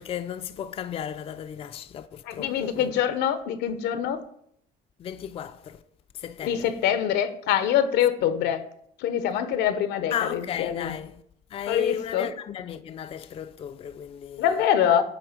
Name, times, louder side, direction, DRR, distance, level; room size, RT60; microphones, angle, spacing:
voice 1, 0.0-2.9 5.0-5.8 6.1-6.7 10.1-11.2 11.5-14.6, left 8 dB, 35° left, 0.4 m, -34 dB
voice 2, 2.2-4.2 6.4-8.6 9.0-10.9 11.7-12.3 14.4-15.0, left 9 dB, 85° left, 0.8 m, -24 dB
9.1 x 3.2 x 5.2 m
cardioid pair, 110°, 17 cm